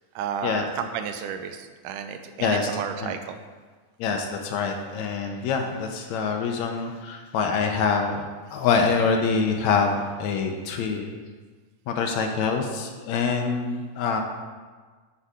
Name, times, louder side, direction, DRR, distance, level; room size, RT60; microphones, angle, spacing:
voice 1, 0.2-3.4 4.1-4.2 8.5-8.6, right 8 dB, 80° right, 8 dB, 2.1 m, -32 dB
voice 2, 4.0-8.3 8.5-11.1 11.9-14.2, left 5 dB, 75° left, 3 dB, 1.7 m, -25 dB
10.0 x 4.8 x 4.9 m, 1.4 s
omnidirectional pair, 3.8 m